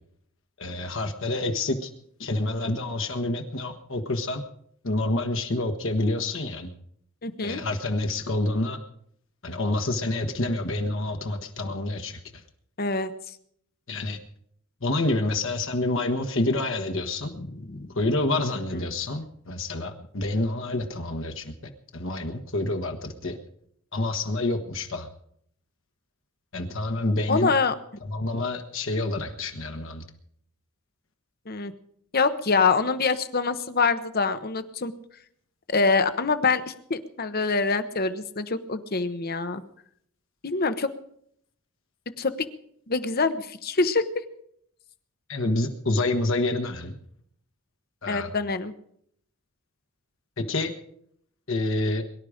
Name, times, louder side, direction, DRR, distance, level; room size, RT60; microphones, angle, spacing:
voice 1, 0.6-1.9 2.2-4.4 4.8-6.7 7.4-8.8 9.4-12.4 13.9-14.2 14.8-17.3 17.9-23.4 23.9-25.1 26.5-27.5 28.0-30.0 45.3-46.9 48.0-48.3 50.4-50.7 51.5-52.0, left 2 dB, 60° left, 5 dB, 1.4 m, -28 dB
voice 2, 7.2-7.6 11.6-11.7 12.8-13.1 17.4-17.9 18.7-18.8 27.3-27.7 31.5-31.7 32.1-34.9 35.7-39.6 40.4-40.9 42.2-42.5 42.9-44.0 48.1-48.7, left 4 dB, 45° left, 11 dB, 1.0 m, -25 dB
23.0 x 11.0 x 5.1 m, 0.69 s
head